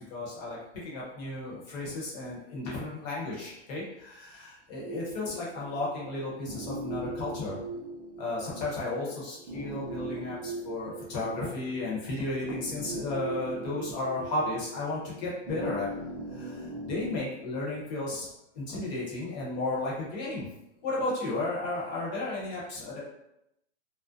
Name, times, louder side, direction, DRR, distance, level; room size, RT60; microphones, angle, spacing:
voice 1, 0.1-0.6 0.8-7.6 8.2-15.9 16.3-18.3 18.5-20.5 20.8-23.0, left 2 dB, 40° left, -5 dB, 0.9 m, -34 dB
sound 1, 4.8-17.2, right 1 dB, 25° right, 0.5 m, -40 dB
2.5 x 2.0 x 2.5 m, 0.82 s
hypercardioid pair, 150°, 35 cm